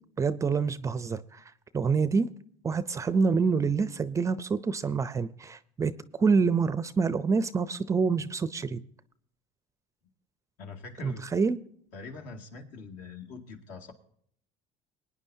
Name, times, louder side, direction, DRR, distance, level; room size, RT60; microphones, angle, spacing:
voice 1, 0.2-1.4 1.7-2.3 2.6-8.8 11.0-11.6, right 5 dB, 20° right, 0.5 m, -27 dB
voice 2, 10.6-11.3 11.9-13.9, left 4 dB, 65° left, 2.2 m, -43 dB
22.5 x 9.7 x 2.7 m
cardioid pair, 125°, 15 cm